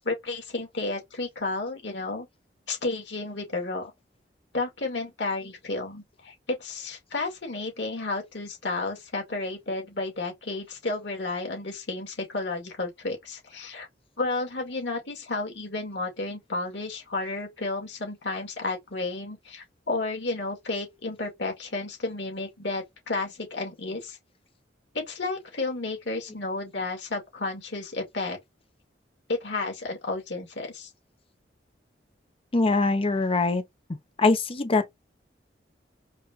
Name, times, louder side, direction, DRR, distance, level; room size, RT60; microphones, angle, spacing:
voice 1, 0.0-2.3 2.7-3.9 4.5-13.9 14.2-24.2 24.9-28.4 29.3-30.9, left 3 dB, 90° left, 2.2 m, -32 dB
voice 2, 32.5-33.6 34.2-34.8, left 3 dB, 35° left, 0.7 m, -22 dB
4.8 x 2.4 x 2.9 m
head